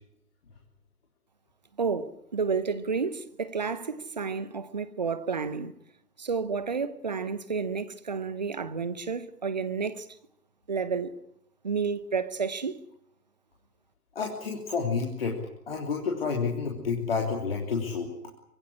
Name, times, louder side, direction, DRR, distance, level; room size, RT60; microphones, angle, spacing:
voice 1, 1.8-5.7 6.2-10.1 10.7-11.1 11.6-12.8, right 5 dB, 25° right, 0.9 m, -31 dB
voice 2, 14.1-15.4 15.7-18.1, left 5 dB, 35° left, 3.3 m, -29 dB
24.5 x 17.5 x 10.0 m
figure-of-eight pair, 145°, 48 cm